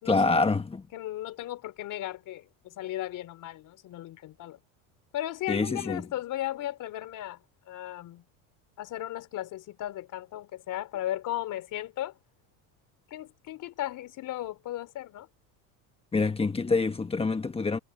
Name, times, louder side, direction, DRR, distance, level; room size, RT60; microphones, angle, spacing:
voice 1, 0.0-0.9 5.5-6.1 16.1-17.8, left 3 dB, 15° left, 1.4 m, -26 dB
voice 2, 0.9-4.6 5.1-7.4 7.7-8.2 8.8-12.1 13.1-15.3, left 13 dB, 50° left, 3.6 m, -36 dB
supercardioid pair, 120°, 40 cm